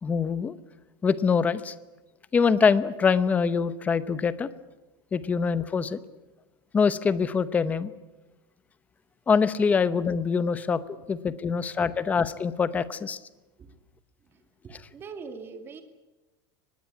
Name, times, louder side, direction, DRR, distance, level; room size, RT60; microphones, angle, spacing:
voice 1, 0.0-0.6 1.0-1.7 2.3-4.5 5.1-6.0 6.7-7.9 9.3-10.8 11.1-13.2, left 5 dB, 10° left, 15 dB, 0.8 m, -24 dB
voice 2, 14.2-15.8, right 5 dB, 20° right, 7 dB, 2.4 m, -43 dB
24.0 x 20.0 x 9.7 m, 1.1 s
supercardioid pair, 175°, 12 cm